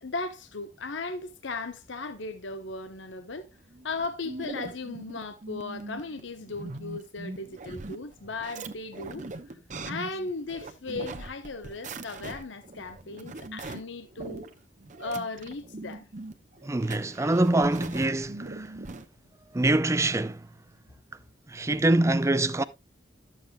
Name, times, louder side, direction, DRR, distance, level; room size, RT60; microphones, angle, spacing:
voice 1, 0.0-3.5 3.8-9.3 9.8-14.5 15.0-16.1, left 3 dB, 70° left, 0.9 m, -36 dB
sound 1, 3.7-19.1, right 2 dB, 40° right, 0.9 m, -41 dB
voice 2, 16.6-18.7 19.5-20.4 21.5-22.6, right 2 dB, 15° right, 0.5 m, -24 dB
12.5 x 7.5 x 2.3 m
head